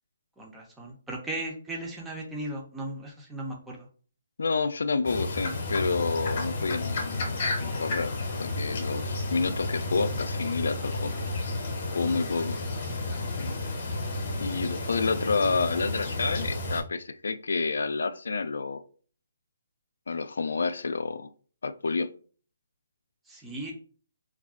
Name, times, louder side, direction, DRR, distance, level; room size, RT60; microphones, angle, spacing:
voice 1, 0.4-3.9 13.1-13.3 23.3-23.7, right 1 dB, 5° right, 0.4 m, -37 dB
voice 2, 4.4-8.1 8.4-11.1 11.9-12.6 13.4-13.6 14.4-18.8 20.1-21.3 21.6-22.1, left 4 dB, 75° left, 0.3 m, -29 dB
sound 1, 5.0-16.8, left 2 dB, 30° left, 0.7 m, -32 dB
2.4 x 2.1 x 3.5 m
hypercardioid pair, 175°, 0 cm